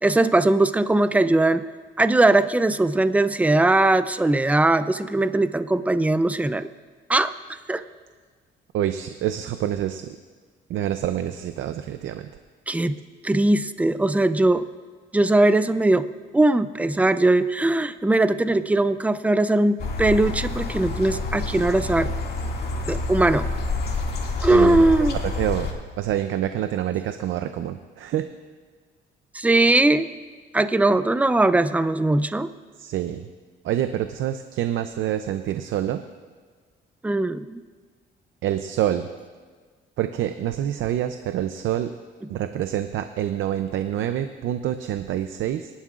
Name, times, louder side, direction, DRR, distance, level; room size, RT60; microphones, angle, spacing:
voice 1, 0.0-1.7 2.0-6.7 7.1-7.3 7.7-7.8 12.7-13.0 13.2-14.7 15.1-16.1 16.3-22.1 22.9-23.5 24.4-25.2 29.3-30.1 30.5-32.5 37.0-37.6, right 2 dB, 5° right, 12 dB, 0.5 m, -20 dB
voice 2, 8.7-10.0 10.7-12.3 24.5-25.1 25.4-25.7 26.0-28.3 32.8-33.3 33.6-36.0 38.4-39.1 40.0-41.9 42.3-45.7, right 11 dB, 80° right, 9 dB, 0.6 m, -26 dB
sound 1, 19.8-25.7, left 3 dB, 55° left, 2.2 m, -28 dB
24.5 x 11.5 x 2.5 m, 1.5 s
cardioid pair, 90°, 20 cm